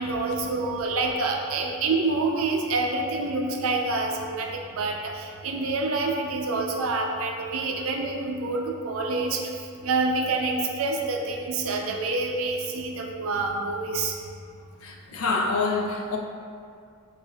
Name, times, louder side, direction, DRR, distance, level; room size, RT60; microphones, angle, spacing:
voice 1, 0.0-9.5 9.8-14.1, right 3 dB, 70° right, 1 dB, 0.5 m, -27 dB
voice 2, 14.8-16.2, left 3 dB, 70° left, 1 dB, 0.5 m, -26 dB
6.3 x 2.5 x 2.2 m, 2.2 s
head